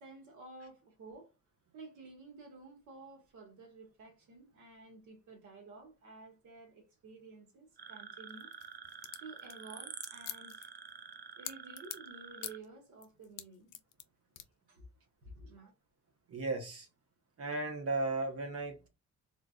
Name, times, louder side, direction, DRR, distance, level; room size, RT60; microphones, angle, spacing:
voice 1, 0.0-1.3 1.7-8.5 9.2-10.7 11.4-13.8 14.7-14.9 15.2-15.7, right 3 dB, 80° right, 1.6 m, -52 dB
sound 1, 7.8-12.6, right 6 dB, 35° right, 0.5 m, -48 dB
sound 2, 8.3-12.1 12.4-12.7 13.0-14.0 14.4-14.5, left 13 dB, 90° left, 0.5 m, -44 dB
voice 2, 16.3-16.9 17.4-18.9, right 2 dB, 50° right, 1.0 m, -35 dB
3.7 x 2.5 x 2.4 m
cardioid pair, 90°, 30 cm